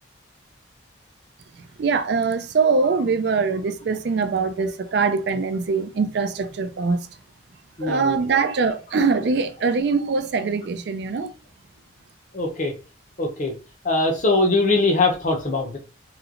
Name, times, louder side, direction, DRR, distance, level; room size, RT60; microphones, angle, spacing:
voice 1, 1.6-7.1 7.8-11.3, right 4 dB, 60° right, 0.4 m, -23 dB
voice 2, 7.8-8.2 12.3-12.7 13.2-13.5 13.8-15.8, left 2 dB, 40° left, 0.7 m, -21 dB
3.1 x 2.8 x 2.5 m
head